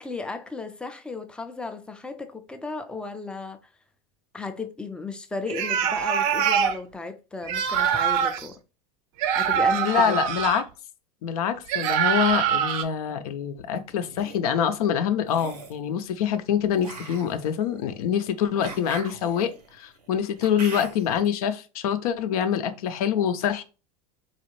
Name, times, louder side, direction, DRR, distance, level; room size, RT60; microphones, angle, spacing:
voice 1, 0.0-3.6 4.3-8.6 9.4-10.2, left 3 dB, 5° left, 0.4 m, -35 dB
sound 1, 5.5-6.8 7.4-8.5 9.2-10.6 11.7-12.8, right 8 dB, 60° right, 0.6 m, -24 dB
voice 2, 9.8-10.6 11.2-23.6, left 8 dB, 70° left, 0.5 m, -25 dB
sound 2, 13.9-14.4 15.2-15.8 16.8-21.2, right 3 dB, 85° right, 0.8 m, -41 dB
4.0 x 2.4 x 3.0 m
hypercardioid pair, 90°, 20 cm